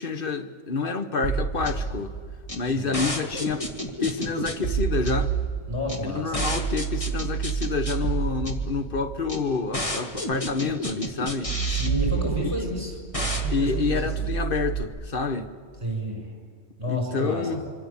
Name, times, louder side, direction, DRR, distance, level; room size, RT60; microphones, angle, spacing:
voice 1, 0.0-2.1 2.6-3.6 4.0-5.3 6.0-11.5 13.5-15.5 16.9-17.6, left 4 dB, 40° left, 9 dB, 1.4 m, -28 dB
sound 1, 1.2-14.8, right 4 dB, 25° left, 2.0 m, -29 dB
voice 2, 5.7-6.6 11.7-13.0 13.3-14.3 15.8-16.3 16.8-17.7, equal, 20° right, 1 dB, 6.8 m, -31 dB
26.5 x 25.5 x 7.2 m, 2.2 s
omnidirectional pair, 1.4 m